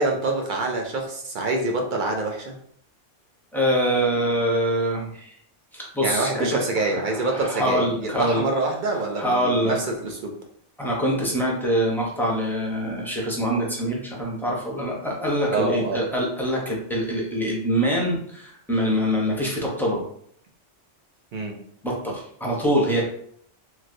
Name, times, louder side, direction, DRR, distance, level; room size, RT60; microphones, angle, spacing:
voice 1, 0.0-2.5 6.0-10.3 15.5-16.0 21.3-21.6, right 2 dB, 55° right, 1 dB, 0.6 m, -26 dB
voice 2, 3.5-5.3 5.7-8.4 9.2-9.8 10.8-20.0 21.8-23.0, equal, ahead, -4 dB, 0.5 m, -24 dB
3.1 x 2.6 x 2.6 m, 0.64 s
omnidirectional pair, 1.2 m